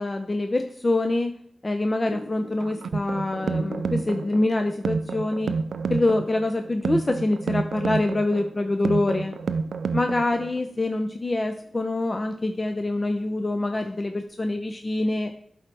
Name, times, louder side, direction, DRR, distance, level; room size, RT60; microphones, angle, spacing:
voice 1, 0.0-1.3 1.6-5.5 5.9-9.3 9.9-15.3, left 2 dB, 35° left, 6 dB, 0.6 m, -25 dB
Thunder / Rain, 2.0-14.3, left 1 dB, 50° left, 3.3 m, -47 dB
sound 1, 2.6-10.6, right 5 dB, 80° right, 0.3 m, -29 dB
11.5 x 4.3 x 3.4 m, 0.65 s
cardioid pair, 55°, 0 cm